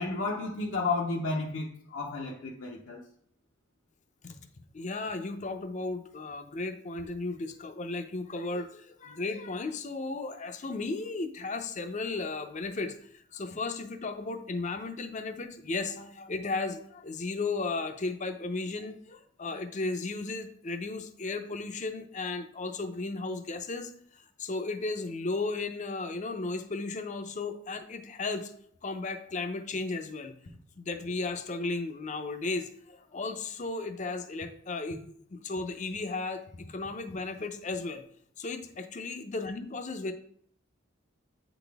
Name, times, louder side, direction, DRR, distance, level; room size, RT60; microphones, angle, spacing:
voice 1, 0.0-3.0, left 3 dB, 75° left, -2 dB, 0.8 m, -32 dB
voice 2, 4.7-28.5 28.8-30.4 30.8-35.0 35.3-38.0 38.4-40.1, left 3 dB, 40° left, 8 dB, 0.6 m, -35 dB
8.5 x 4.1 x 3.5 m, 0.63 s
head